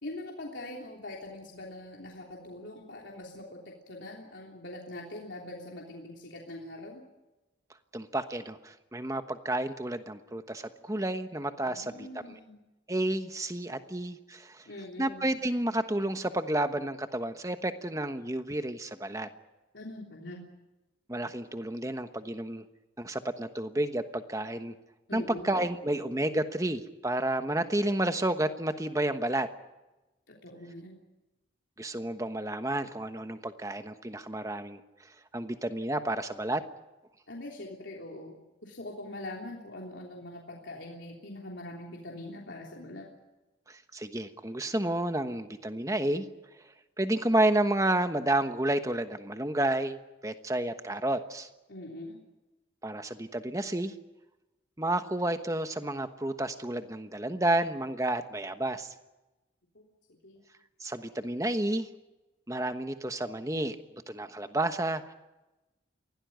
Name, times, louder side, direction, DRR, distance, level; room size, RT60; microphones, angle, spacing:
voice 1, 0.0-3.6 3.9-7.0 11.6-12.6 14.6-15.3 19.7-20.4 25.1-25.5 30.3-31.0 37.3-38.3 38.6-43.1 51.7-52.2 59.7-59.8 60.2-60.4, left 1 dB, 75° left, -1 dB, 3.3 m, -43 dB
voice 2, 7.9-12.1 12.9-14.6 15.0-19.3 21.1-22.6 23.0-24.7 25.1-29.5 31.8-34.8 35.3-36.6 43.7-46.3 47.0-50.0 50.2-51.5 52.8-53.9 54.8-58.9 60.8-61.9 62.5-63.8 64.1-65.1, right 1 dB, 15° right, 8 dB, 1.2 m, -30 dB
23.5 x 17.0 x 9.4 m, 1.1 s
head